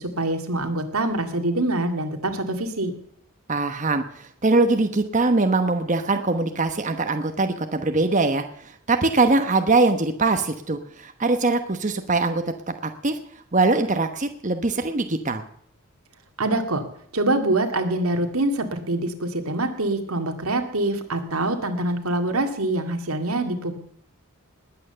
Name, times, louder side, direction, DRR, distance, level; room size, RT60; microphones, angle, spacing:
voice 1, 0.0-2.9 16.4-16.8 17.1-23.7, right 2 dB, 90° right, 5 dB, 2.3 m, -25 dB
voice 2, 3.5-12.4 12.8-13.2 13.5-15.4, right 3 dB, 35° right, 7 dB, 1.1 m, -22 dB
20.0 x 9.2 x 6.8 m, 0.68 s
head